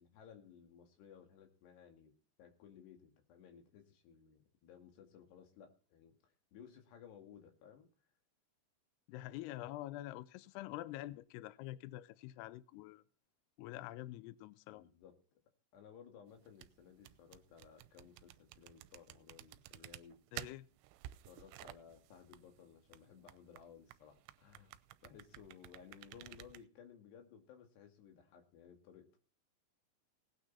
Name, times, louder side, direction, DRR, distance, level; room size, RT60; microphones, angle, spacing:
voice 1, 0.0-2.1 2.4-7.9 14.7-15.2 15.7-20.2 21.3-24.7 25.0-29.1, left 8 dB, 65° left, 4.2 m, -58 dB
voice 2, 9.1-13.0 13.6-14.8 20.3-20.7, left 15 dB, 90° left, 2.3 m, -46 dB
sound 1, 16.3-26.6, right 16 dB, 80° right, 3.0 m, -53 dB
18.0 x 9.3 x 4.2 m
omnidirectional pair, 5.5 m